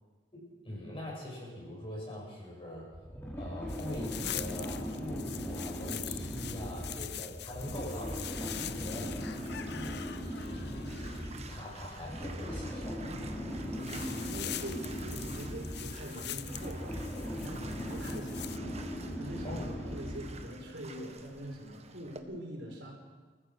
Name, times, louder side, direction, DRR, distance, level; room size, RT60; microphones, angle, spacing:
voice 1, 0.3-2.9 3.4-10.0 10.5-10.6 11.5-13.1 19.4-19.8, left 1 dB, 30° left, -3 dB, 7.6 m, -43 dB
sound 1, 2.9-20.5, equal, 15° left, 4.3 m, -39 dB
sound 2, 3.7-11.4 13.1-13.3 13.6-18.6, left 12 dB, 65° left, 0.7 m, -43 dB
Bathtub (filling or washing), 7.9-22.2, right 4 dB, 35° right, 1.5 m, -51 dB
voice 2, 13.7-22.9, equal, 70° right, 0 dB, 5.4 m, -44 dB
28.0 x 15.0 x 6.4 m, 1.4 s
head